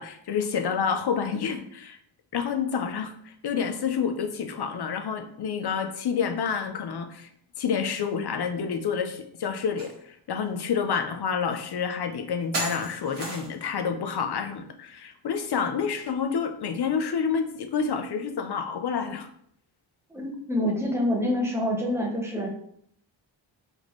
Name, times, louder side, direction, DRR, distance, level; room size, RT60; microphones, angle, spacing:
voice 1, 0.0-2.0 2.3-7.3 7.6-9.9 10.3-19.3, left 6 dB, 55° left, 6 dB, 0.5 m, -28 dB
sound 1, 9.8-9.9 10.4-10.5 11.5-11.6 12.5-13.7, right 2 dB, 60° right, 1.5 m, -33 dB
voice 2, 20.1-22.5, left 1 dB, 5° right, -1 dB, 0.7 m, -26 dB
4.0 x 3.4 x 3.0 m, 0.67 s
wide cardioid pair, 180°, 48 cm